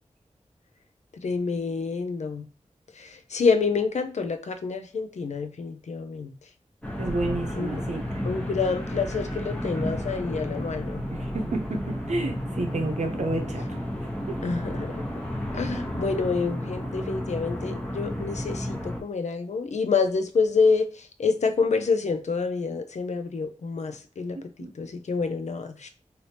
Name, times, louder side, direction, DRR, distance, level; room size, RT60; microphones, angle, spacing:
voice 1, 1.2-2.5 3.0-6.3 7.5-7.8 8.2-11.0 14.4-15.0 15.5-24.4 24.8-25.9, left 4 dB, 75° left, 0.5 m, -27 dB
sound 1, 6.8-19.0, equal, 10° left, 0.9 m, -32 dB
voice 2, 7.0-8.0 11.1-13.6 24.6-24.7, right 2 dB, 70° right, 0.7 m, -30 dB
3.2 x 2.7 x 2.8 m
wide cardioid pair, 75°, 12 cm